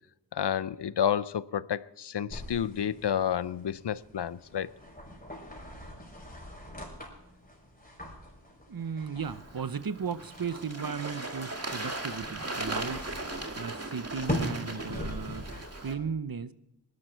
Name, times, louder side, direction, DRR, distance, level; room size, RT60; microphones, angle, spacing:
voice 1, 0.3-4.7, left 9 dB, 75° left, 0.6 m, -30 dB
sound 1, 2.3-16.0, left 1 dB, 20° left, 5.7 m, -42 dB
voice 2, 8.7-13.1 13.6-15.5 15.8-16.5, right 6 dB, 55° right, 0.8 m, -36 dB
Bird / Water, 9.2-15.9, right 2 dB, 35° right, 2.0 m, -38 dB
19.5 x 12.0 x 4.5 m
wide cardioid pair, 40°, 41 cm